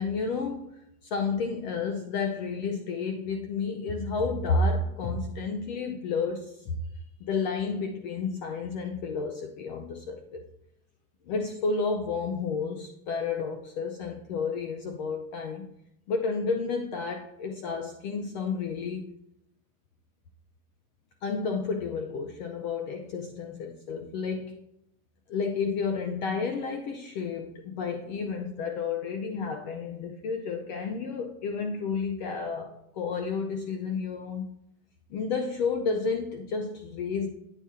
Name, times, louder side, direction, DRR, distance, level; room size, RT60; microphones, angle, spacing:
voice 1, 0.0-6.8 7.2-10.4 11.3-15.7 16.1-19.1 21.2-24.6 25.3-34.5 35.1-37.3, left 4 dB, 35° left, 5 dB, 0.5 m, -31 dB
8.9 x 4.2 x 3.6 m, 0.79 s
supercardioid pair, 160°, 43 cm